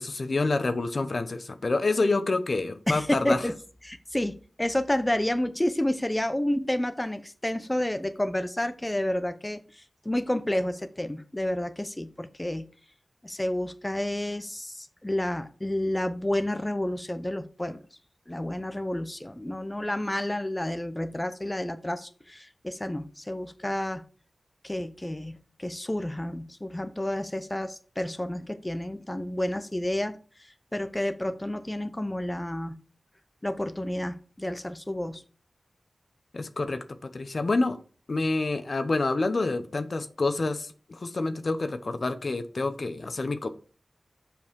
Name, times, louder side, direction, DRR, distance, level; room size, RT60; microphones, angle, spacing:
voice 1, 0.0-3.4 36.3-37.8 38.1-43.5, left 3 dB, 60° left, 10 dB, 0.8 m, -28 dB
voice 2, 2.9-3.5 3.8-12.7 13.2-17.8 18.3-24.0 24.6-32.8 33.4-35.2, left 1 dB, 15° left, 10 dB, 0.7 m, -30 dB
7.2 x 5.4 x 4.7 m, 0.39 s
wide cardioid pair, 80°, 0 cm